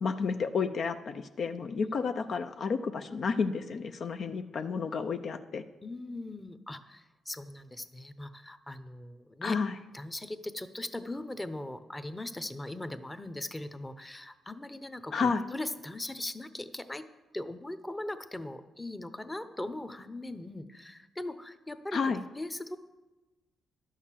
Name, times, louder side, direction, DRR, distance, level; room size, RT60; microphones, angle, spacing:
voice 1, 0.0-5.6 9.4-9.7 15.1-15.4 21.9-22.2, left 5 dB, 55° left, 8 dB, 0.5 m, -31 dB
voice 2, 5.8-9.6 9.9-17.0 17.3-22.0 22.4-22.8, left 1 dB, 15° left, 11 dB, 0.8 m, -40 dB
11.0 x 6.5 x 7.4 m, 1.1 s
cardioid pair, 85°, 0 cm